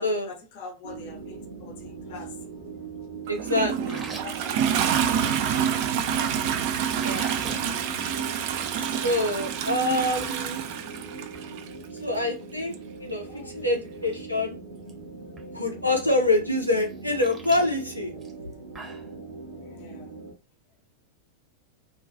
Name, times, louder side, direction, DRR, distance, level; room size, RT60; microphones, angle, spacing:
voice 1, 0.0-2.4 3.8-4.9 10.0-10.1 13.3-13.5 19.6-20.2, left 4 dB, 50° left, 0.6 m, -45 dB
sound 1, 0.8-20.3, right 4 dB, 80° right, 0.7 m, -41 dB
voice 2, 3.3-4.1 6.8-7.5 8.8-10.6 12.0-14.6 15.5-18.1, left 2 dB, 90° left, 0.5 m, -26 dB
Toilet flush, 3.3-11.7 12.7-12.8, right 8 dB, 45° right, 0.3 m, -27 dB
sound 2, 3.8-5.3 6.8-7.6 8.0-8.2 8.6-8.7 9.2-9.3 9.6-10.3 10.7-11.0 11.3-11.5 13.3-13.4 13.9-14.2 14.4-14.9 15.4-15.5 16.8-19.1, right 3 dB, 20° right, 0.7 m, -42 dB
2.3 x 2.2 x 2.5 m
figure-of-eight pair, 90°, 0 cm